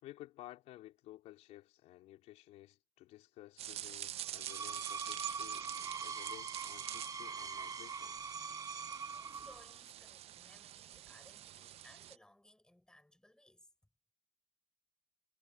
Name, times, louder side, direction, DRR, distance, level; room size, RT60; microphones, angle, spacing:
voice 1, 0.0-8.2, left 15 dB, 80° left, 3.6 m, -55 dB
sound 1, 3.6-12.2, right 12 dB, 65° right, 0.7 m, -47 dB
Screech, 4.2-9.7, right 5 dB, 35° right, 1.2 m, -43 dB
voice 2, 8.8-13.7, left 1 dB, 5° left, 5.5 m, -63 dB
supercardioid pair, 75°, 11 cm